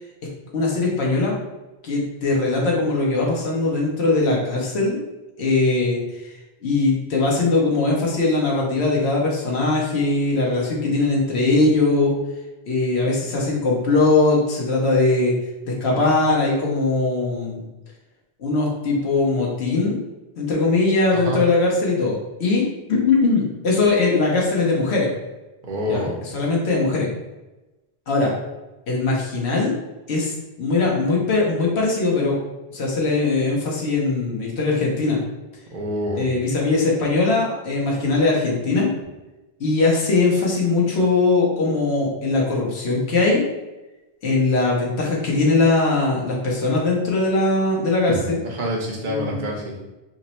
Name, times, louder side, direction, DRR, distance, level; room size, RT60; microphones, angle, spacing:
voice 1, 0.5-1.4 1.8-5.0 5.4-12.1 12.7-15.3 15.6-17.6 18.4-20.0 20.4-25.1 25.9-27.1 28.1-28.3 28.9-29.8 30.1-32.4 32.7-35.2 36.1-38.9 39.6-43.4 44.2-48.4 49.0-49.5, left 3 dB, 90° left, -2 dB, 1.1 m, -20 dB
voice 2, 21.1-21.4 25.6-26.1 35.7-36.3 48.4-49.7, equal, 55° right, -1 dB, 0.9 m, -27 dB
3.5 x 2.0 x 4.1 m, 1.1 s
omnidirectional pair, 1.1 m